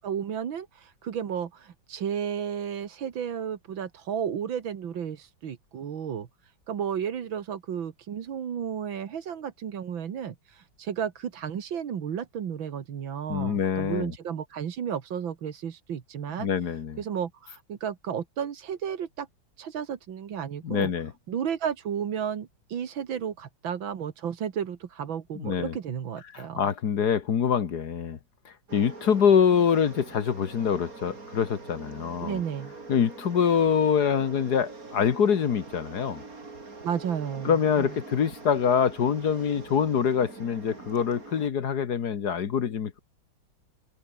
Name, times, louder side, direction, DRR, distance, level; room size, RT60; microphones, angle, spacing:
voice 1, 0.0-16.5 17.0-19.3 19.6-20.9 21.3-26.6 32.2-32.7 36.8-37.9, right 8 dB, 85° right, 2.3 m, -33 dB
voice 2, 13.3-14.1 16.4-17.0 20.6-21.1 25.4-25.8 26.3-28.2 28.5-32.4 32.9-36.2 37.5-43.0, left 7 dB, 55° left, 1.8 m, -25 dB
sound 1, 28.7-41.5, right 3 dB, 45° right, 4.1 m, -44 dB
omnidirectional pair, 2.1 m